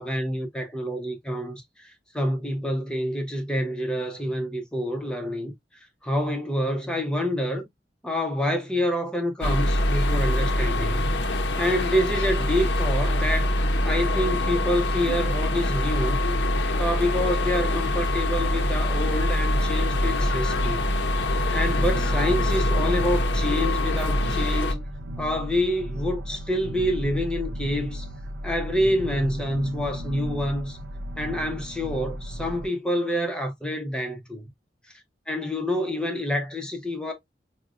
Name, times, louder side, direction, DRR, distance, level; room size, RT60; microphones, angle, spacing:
voice 1, 0.0-5.5 6.0-7.7 8.0-11.1 11.6-13.5 13.8-16.2 16.8-20.9 21.5-24.8 25.2-28.1 28.4-30.8 31.2-34.5 35.3-37.1, equal, 5° left, 0.6 m, -27 dB
sound 1, 9.4-24.7, left 1 dB, 70° left, 0.6 m, -24 dB
sound 2, 19.0-32.7, equal, 85° right, 0.6 m, -35 dB
4.9 x 2.1 x 2.3 m
head